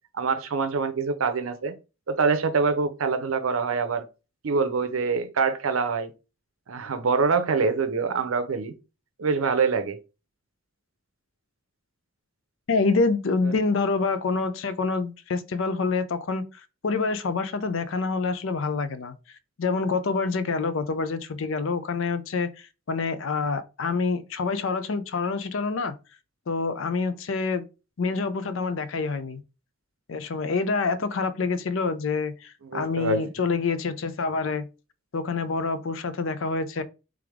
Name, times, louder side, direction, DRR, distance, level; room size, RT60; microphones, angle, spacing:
voice 1, 0.2-1.7 2.1-4.1 4.4-6.1 6.7-8.7 9.2-10.0 32.7-33.2, right 4 dB, 90° right, 0.6 m, -25 dB
voice 2, 12.7-16.5 16.8-19.1 19.6-25.9 26.5-27.7 28.0-29.4 30.1-34.7 35.1-36.8, left 4 dB, 70° left, 0.5 m, -27 dB
3.5 x 3.4 x 3.5 m
head